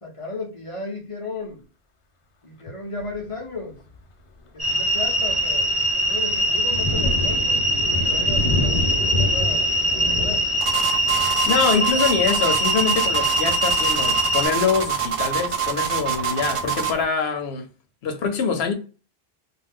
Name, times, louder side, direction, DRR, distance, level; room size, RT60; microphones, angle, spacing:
voice 1, 0.0-1.6 2.4-3.8 4.5-5.7 6.1-9.7 10.0-10.5 11.7-12.3, left 2 dB, 35° left, 0.7 m, -35 dB
Thunder, 3.0-3.3 3.9-4.0 4.5-15.0, left 2 dB, 55° left, 0.3 m, -30 dB
sound 1, 4.6-14.5, right 1 dB, ahead, 1.3 m, -22 dB
sound 2, 10.6-17.0, right 8 dB, 45° right, 0.5 m, -25 dB
voice 2, 11.5-17.7 18.0-18.7, left 6 dB, 85° left, 0.9 m, -24 dB
2.5 x 2.2 x 3.4 m
omnidirectional pair, 1.0 m